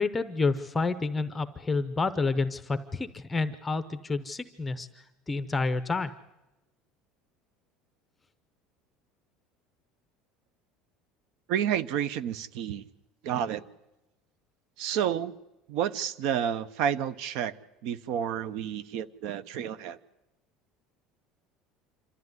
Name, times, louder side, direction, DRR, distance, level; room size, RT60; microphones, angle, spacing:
voice 1, 0.0-4.9 5.3-6.1, left 3 dB, 10° left, 11 dB, 0.7 m, -29 dB
voice 2, 11.5-12.8 13.2-13.6 14.8-15.3 15.7-17.5 17.8-20.0, right 9 dB, 55° right, 18 dB, 0.9 m, -30 dB
27.0 x 13.5 x 9.6 m, 0.98 s
cardioid pair, 170°, 0 cm